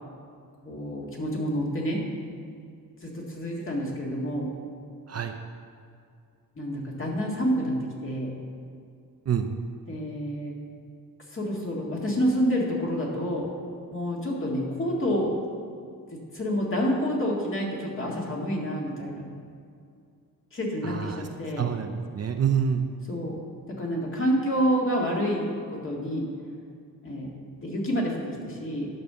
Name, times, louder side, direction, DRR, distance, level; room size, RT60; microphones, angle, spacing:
voice 1, 0.6-2.0 3.0-4.5 6.6-8.3 9.9-10.5 11.3-13.5 13.9-15.4 16.3-19.3 20.5-21.7 23.1-23.4 23.7-25.5 25.8-26.3 27.0-27.3 27.6-28.9, equal, 35° left, -3 dB, 2.1 m, -28 dB
voice 2, 20.8-21.2 21.6-22.9, right 7 dB, 45° right, 6 dB, 0.6 m, -27 dB
10.5 x 5.4 x 6.9 m, 2.3 s
wide cardioid pair, 140°, 36 cm